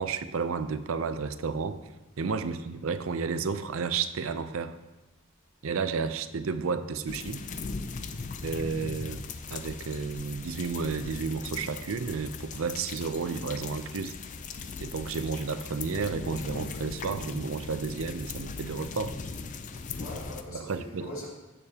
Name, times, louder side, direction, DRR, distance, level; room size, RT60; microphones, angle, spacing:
voice 1, 0.0-1.8 2.2-4.8 5.6-7.4 8.4-14.2 14.8-19.2 20.5-21.1, right 5 dB, 70° right, 11 dB, 0.5 m, -32 dB
sound 1, 7.1-20.4, left 4 dB, 35° left, 0.4 m, -39 dB
voice 2, 19.9-21.3, left 1 dB, 75° left, -6 dB, 3.4 m, -42 dB
15.5 x 6.8 x 2.8 m, 1.1 s
head